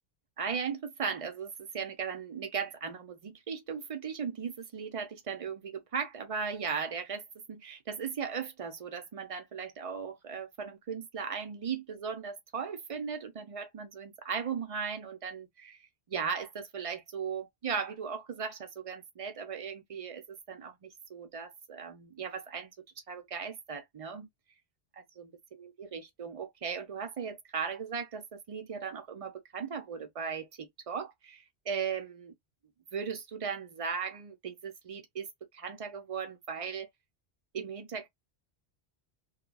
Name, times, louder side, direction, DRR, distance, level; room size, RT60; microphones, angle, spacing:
voice 1, 0.4-22.7 23.1-24.3 25.0-32.3 32.9-35.3 35.5-36.9 37.5-38.1, right 6 dB, 40° right, 0.7 m, -37 dB
3.1 x 2.3 x 2.2 m
omnidirectional pair, 1.1 m